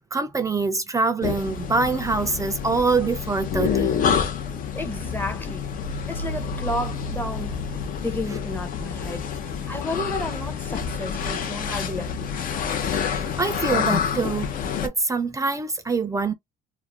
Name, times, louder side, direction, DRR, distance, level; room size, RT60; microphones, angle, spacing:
voice 1, 0.1-4.0 13.1-14.5 14.8-16.3, right 4 dB, 20° right, 0.4 m, -24 dB
sound 1, 1.2-14.9, left 6 dB, 55° left, 0.6 m, -28 dB
voice 2, 4.7-5.7 6.1-7.6 8.0-12.6, left 1 dB, 10° left, 0.7 m, -32 dB
2.4 x 2.1 x 3.2 m
cardioid pair, 110°, 17 cm